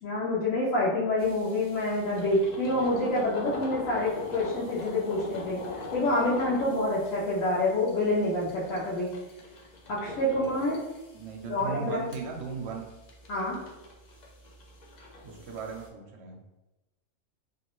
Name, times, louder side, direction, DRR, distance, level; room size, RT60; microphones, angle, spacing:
voice 1, 0.0-5.6 5.9-9.1 9.9-10.8 11.5-12.1 13.3-13.6, left 1 dB, 90° left, -7 dB, 1.2 m, -27 dB
sound 1, 1.2-15.9, left 2 dB, 50° left, 0.5 m, -42 dB
voice 2, 11.1-12.9 15.2-16.4, right 5 dB, 65° right, 1 dB, 0.8 m, -37 dB
3.0 x 2.8 x 3.0 m, 1.0 s
omnidirectional pair, 1.3 m